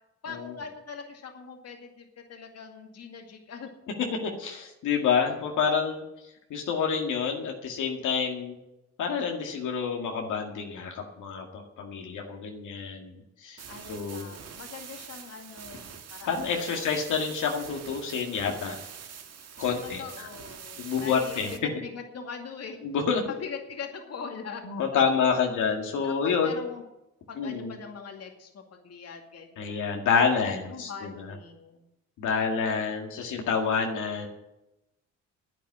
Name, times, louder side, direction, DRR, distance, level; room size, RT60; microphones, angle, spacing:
voice 1, 0.2-3.7 13.7-16.4 16.7-17.2 19.8-22.8 23.4-24.6 26.0-26.8 27.3-31.8 32.3-33.1, left 5 dB, 55° left, 3 dB, 2.3 m, -42 dB
voice 2, 4.0-6.0 6.5-8.6 9.0-13.6 13.9-14.3 16.3-18.8 19.6-20.3 20.8-21.5 22.8-23.2 24.6-26.6 27.4-27.7 29.6-31.3 32.2-34.3, left 6 dB, 80° left, 1 dB, 2.2 m, -28 dB
sound 1, 13.6-21.6, right 7 dB, 55° right, 1.6 m, -44 dB
10.5 x 9.3 x 8.7 m, 0.91 s
cardioid pair, 90°, 30 cm